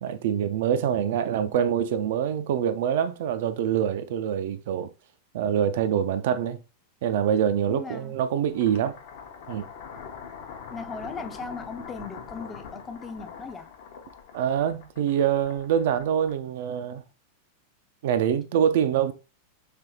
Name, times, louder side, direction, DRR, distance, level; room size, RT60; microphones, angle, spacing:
voice 1, 0.0-4.9 5.3-6.6 7.0-9.0 9.5-9.6 14.3-17.0 18.0-19.1, right 9 dB, 55° right, 0.3 m, -25 dB
voice 2, 7.7-8.2 10.7-13.7, left 4 dB, 20° left, 0.5 m, -38 dB
sound 1, 8.4-16.7, left 6 dB, 50° left, 0.7 m, -43 dB
3.3 x 3.3 x 2.8 m
figure-of-eight pair, 90°, 0 cm